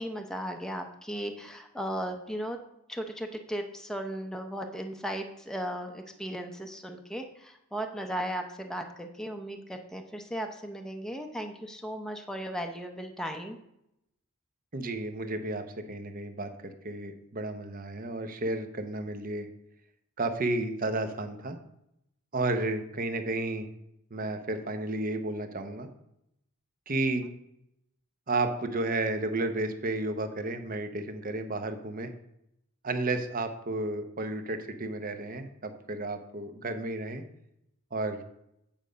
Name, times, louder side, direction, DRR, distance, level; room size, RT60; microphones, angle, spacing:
voice 1, 0.0-2.6 2.9-13.6, equal, 5° left, 3 dB, 0.6 m, -36 dB
voice 2, 14.7-15.6 15.9-19.5 20.2-21.6 22.3-23.7 24.1-25.9 26.9-27.3 28.3-32.1 32.8-37.2 37.9-38.2, right 2 dB, 40° right, 8 dB, 0.8 m, -32 dB
9.0 x 5.3 x 5.0 m, 0.80 s
head